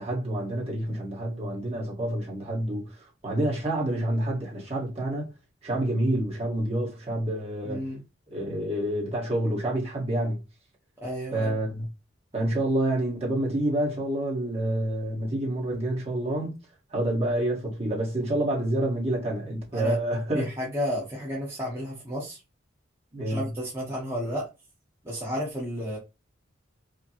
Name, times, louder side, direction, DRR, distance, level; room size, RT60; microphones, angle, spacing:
voice 1, 0.0-5.3 5.6-7.9 8.3-10.4 11.3-11.8 12.3-16.6 16.9-20.4 23.1-23.4, right 1 dB, 35° right, 1.6 m, -28 dB
voice 2, 7.6-8.0 11.0-11.6 19.7-20.0 20.3-22.4 23.3-24.5 25.0-26.0, equal, 15° right, 1.1 m, -32 dB
4.9 x 2.2 x 3.0 m
head